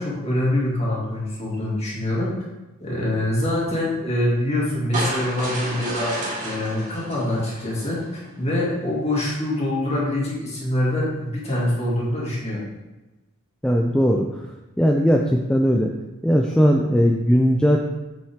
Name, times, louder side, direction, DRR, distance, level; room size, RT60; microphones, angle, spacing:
voice 1, 0.0-2.3 2.8-6.1 6.4-8.0 8.4-12.6, left 1 dB, 30° left, -5 dB, 2.4 m, -24 dB
sound 1, 4.9-8.2, right 1 dB, 35° right, 2.1 m, -31 dB
voice 2, 13.6-14.3 14.8-15.9 16.2-17.8, equal, 5° left, 1 dB, 0.4 m, -18 dB
7.4 x 7.3 x 3.6 m, 1.1 s
head